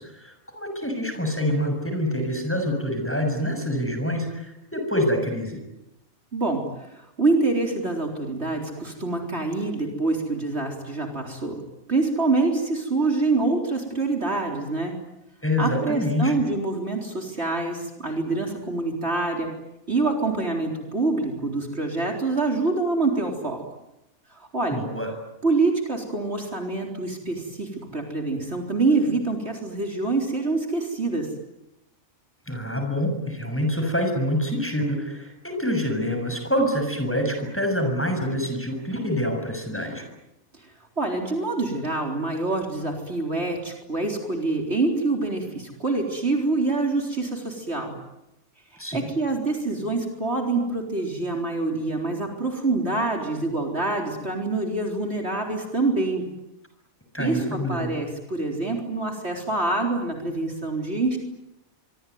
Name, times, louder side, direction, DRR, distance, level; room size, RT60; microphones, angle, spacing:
voice 1, 0.0-5.6 15.4-16.3 24.7-25.1 32.5-40.0 48.8-49.1 57.1-58.0, equal, 10° left, 4 dB, 6.9 m, -26 dB
voice 2, 6.3-11.6 11.9-14.9 15.6-19.5 19.9-23.6 24.3-24.8 25.4-31.3 41.0-47.9 48.7-56.2 57.2-61.2, right 3 dB, 50° right, 2 dB, 4.3 m, -26 dB
25.0 x 25.0 x 9.5 m, 0.90 s
omnidirectional pair, 1.4 m